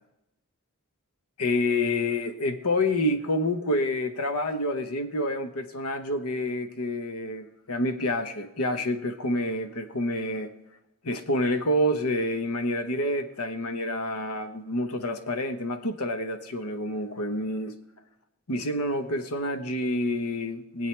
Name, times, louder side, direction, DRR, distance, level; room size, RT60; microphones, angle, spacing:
voice 1, 1.4-10.5 11.0-17.7 18.5-20.9, left 1 dB, 85° left, 7 dB, 1.2 m, -28 dB
22.5 x 8.4 x 3.4 m, 0.90 s
head